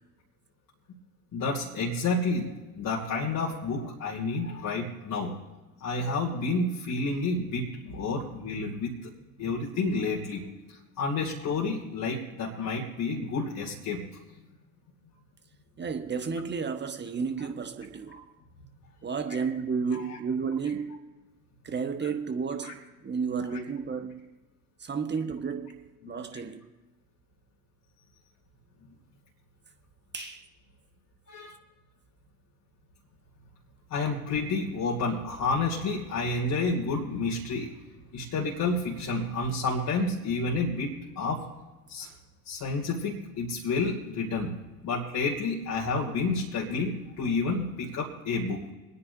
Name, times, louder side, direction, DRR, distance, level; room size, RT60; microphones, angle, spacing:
voice 1, 1.3-5.3 5.8-9.1 9.4-10.5 11.0-14.0 18.1-18.2 19.3-19.4 19.9-20.0 22.6-22.7 23.2-23.3 26.0-26.1 30.2-30.3 31.3-31.6 33.9-37.7 38.1-41.4 41.9-42.1 42.5-44.5 44.8-48.7, left 3 dB, 45° left, 2.5 m, -30 dB
voice 2, 15.8-18.2 19.0-21.1 21.6-24.2 24.8-26.7 30.1-30.4 31.3-31.6, right 5 dB, 25° right, 1.3 m, -32 dB
25.5 x 9.8 x 2.7 m
figure-of-eight pair, 60°, 45 cm